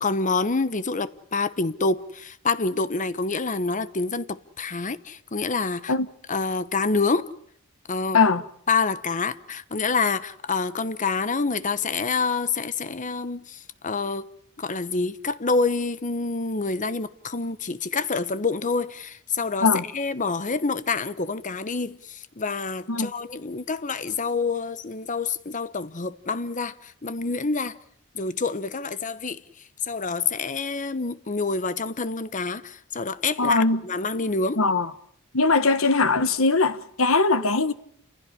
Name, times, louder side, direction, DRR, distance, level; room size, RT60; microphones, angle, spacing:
voice 1, 0.0-5.9 6.3-7.3 7.9-8.2 8.7-14.3 14.6-19.7 19.9-27.8 28.1-29.4 29.8-34.6, left 4 dB, 40° left, 1.1 m, -27 dB
voice 2, 33.4-33.8 34.6-34.9 35.3-37.7, left 3 dB, 70° left, 1.4 m, -20 dB
29.5 x 16.0 x 10.0 m
head